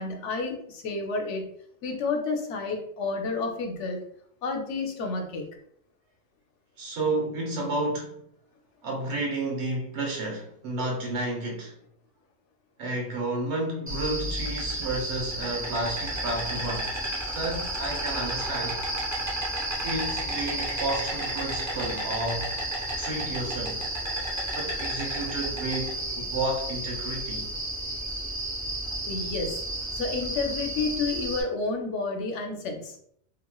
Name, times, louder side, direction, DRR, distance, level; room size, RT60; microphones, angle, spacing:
voice 1, 0.0-1.5 1.8-4.0 4.4-5.4 29.0-29.6 29.9-33.0, left 3 dB, 85° left, 1.0 m, -30 dB
voice 2, 6.8-8.2 8.8-11.7 12.8-16.9 17.3-18.8 19.8-22.5 23.0-23.9 24.5-27.5, right 2 dB, 70° right, 1.1 m, -31 dB
Insect, 13.9-31.4, right 1 dB, 20° right, 0.6 m, -32 dB
2.9 x 2.7 x 2.2 m
omnidirectional pair, 1.2 m